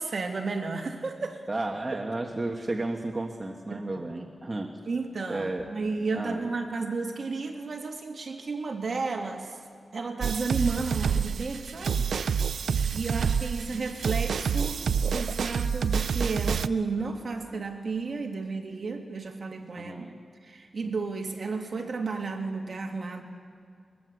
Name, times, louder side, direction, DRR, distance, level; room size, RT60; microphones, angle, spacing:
voice 1, 0.0-1.5 3.7-4.1 4.9-9.5 9.9-12.1 12.4-20.1 20.4-23.2, right 4 dB, 50° right, 2 dB, 2.4 m, -33 dB
voice 2, 1.5-4.8 5.3-5.7 6.1-6.5 19.8-20.2 20.8-20.9, right 2 dB, 25° right, 1 dB, 1.5 m, -33 dB
sound 1, 10.2-16.7, right 6 dB, 85° right, 0.5 m, -28 dB
22.5 x 20.5 x 8.1 m, 2.3 s
wide cardioid pair, 125°, 0 cm